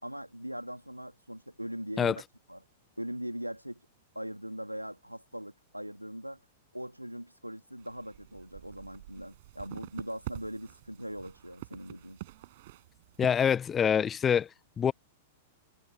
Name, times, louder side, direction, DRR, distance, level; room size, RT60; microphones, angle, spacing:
voice 1, 0.0-2.2 2.5-2.6 3.0-3.8 4.1-6.4 6.7-12.2, equal, 90° right, 2.8 m, -40 dB
sound 1, 7.8-13.5, right 17 dB, 50° right, 6.2 m, -47 dB
voice 2, 13.2-14.5 14.8-14.9, left 8 dB, 20° left, 0.9 m, -25 dB
figure-of-eight pair, 100°, 0 cm